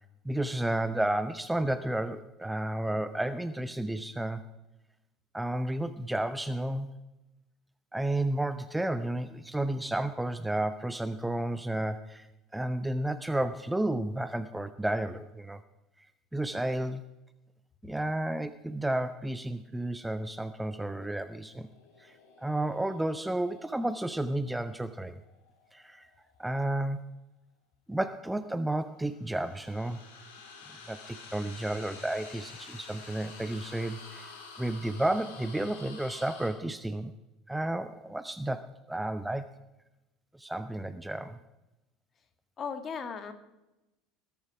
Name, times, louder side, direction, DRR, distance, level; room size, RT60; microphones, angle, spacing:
voice 1, 0.2-4.4 5.3-6.9 7.9-12.3 12.5-15.6 16.3-17.0 17.8-21.7 22.0-25.2 25.7-26.1 26.4-27.0 27.9-30.0 30.9-34.3 34.6-37.1 37.5-39.5 40.4-41.4, right 1 dB, 5° right, 12 dB, 0.7 m, -32 dB
sound 1, 21.3-26.5 29.0-36.5, left 4 dB, 70° left, 3.2 m, -50 dB
voice 2, 42.6-43.3, left 6 dB, 35° left, 9 dB, 1.8 m, -36 dB
20.0 x 10.5 x 4.9 m, 0.96 s
figure-of-eight pair, 70°, 0 cm